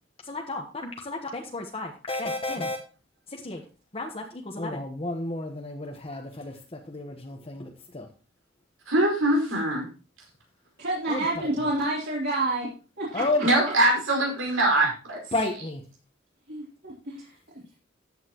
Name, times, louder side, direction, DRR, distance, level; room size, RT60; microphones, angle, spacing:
voice 1, 0.2-2.8 3.3-3.6 3.9-8.1 11.1-11.7 13.1-13.5 15.3-15.8, left 2 dB, 30° left, 1 dB, 1.2 m, -32 dB
voice 2, 8.9-9.8 13.4-15.2, right 1 dB, 85° right, 1 dB, 5.0 m, -22 dB
voice 3, 10.8-12.7 13.0-13.2 16.5-17.6, right 2 dB, 55° right, -6 dB, 3.3 m, -29 dB
14.0 x 9.1 x 3.0 m, 0.34 s
head